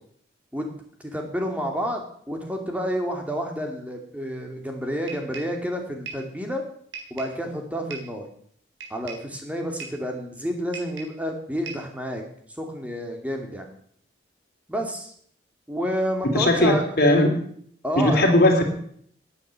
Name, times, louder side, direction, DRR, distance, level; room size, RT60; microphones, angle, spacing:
voice 1, 1.0-6.6 7.1-8.2 8.9-12.2 12.6-13.7 14.7-15.1 15.7-16.8 17.8-18.3, equal, 5° right, 2 dB, 2.4 m, -29 dB
sound 1, 5.1-5.6 6.1-6.3 6.9-7.4 7.9-8.2 8.8-9.3 9.8-10.1 10.7-11.2 11.7-11.9, right 5 dB, 85° right, 4.0 m, -39 dB
voice 2, 16.3-17.3 17.9-18.6, left 1 dB, 50° left, 2 dB, 3.2 m, -18 dB
10.5 x 9.4 x 9.1 m, 0.63 s
head